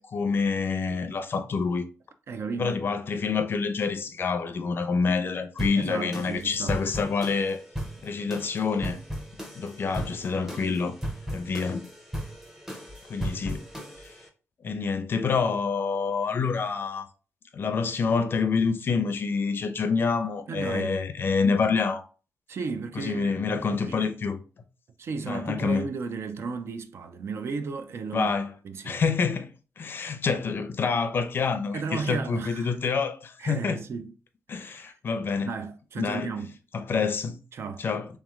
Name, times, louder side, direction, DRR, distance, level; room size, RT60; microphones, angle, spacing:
voice 1, 0.0-1.8 2.6-7.6 8.0-9.0 9.5-11.0 11.3-11.9 13.1-13.6 14.6-17.1 17.5-22.0 22.9-24.4 25.3-25.9 28.1-28.5 28.8-33.8 34.5-35.5 36.0-36.3 36.7-37.4 37.8-38.1, left 5 dB, 40° left, 0.5 m, -27 dB
voice 2, 2.3-2.8 5.7-6.8 20.5-21.0 22.5-24.1 25.0-28.3 28.6-29.0 31.7-32.8 33.4-34.1 34.5-34.9 35.5-36.6 37.5-37.8, right 5 dB, 50° right, 0.5 m, -34 dB
sound 1, 5.6-14.3, equal, 5° right, 0.7 m, -37 dB
3.4 x 3.1 x 3.6 m
cardioid pair, 130°, 5 cm